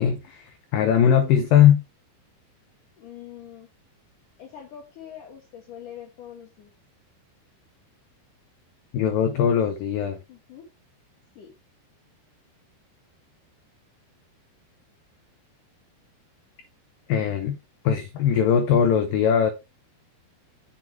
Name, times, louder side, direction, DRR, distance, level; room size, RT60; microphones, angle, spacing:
voice 1, 0.0-1.8 8.9-10.2 17.1-17.6 17.8-19.5, left 8 dB, 80° left, 2.0 m, -20 dB
voice 2, 3.0-3.7 4.4-6.7 10.3-10.7 11.4-11.5, left 9 dB, 65° left, 2.2 m, -43 dB
7.9 x 6.2 x 3.3 m
omnidirectional pair, 5.0 m